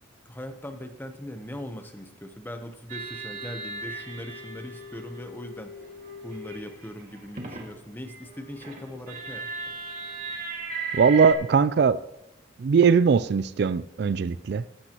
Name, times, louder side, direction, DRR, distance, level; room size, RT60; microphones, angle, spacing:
voice 1, 0.2-5.8 6.2-9.5, equal, 10° left, 7 dB, 0.8 m, -40 dB
sound 1, 2.9-7.7 8.1-11.3, right 3 dB, 40° right, 1.9 m, -37 dB
voice 2, 10.9-12.0 12.6-14.6, right 6 dB, 55° right, 16 dB, 0.3 m, -20 dB
16.0 x 12.0 x 3.0 m, 0.88 s
head